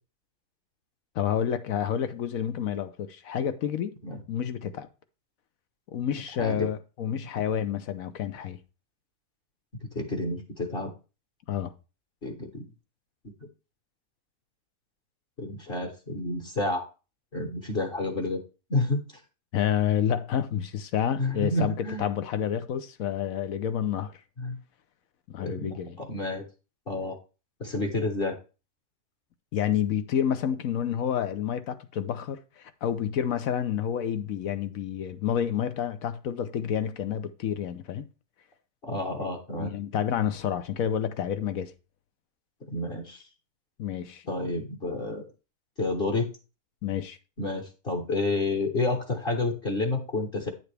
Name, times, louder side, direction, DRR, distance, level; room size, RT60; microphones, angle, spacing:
voice 1, 1.1-3.9 4.3-4.9 5.9-8.6 11.5-11.7 19.5-24.1 25.3-26.0 29.5-38.1 39.2-39.3 39.6-41.7 43.8-44.2 46.8-47.2, left 9 dB, 70° left, 1.2 m, -29 dB
voice 2, 9.9-10.9 12.2-12.6 15.4-16.8 17.3-18.4 18.7-19.0 21.2-22.0 24.4-24.6 25.4-26.4 26.9-27.2 27.6-28.4 38.8-39.7 42.7-43.2 44.3-45.3 45.8-46.3 47.4-50.5, left 2 dB, 40° left, 1.4 m, -29 dB
9.8 x 7.0 x 3.4 m
omnidirectional pair, 1.6 m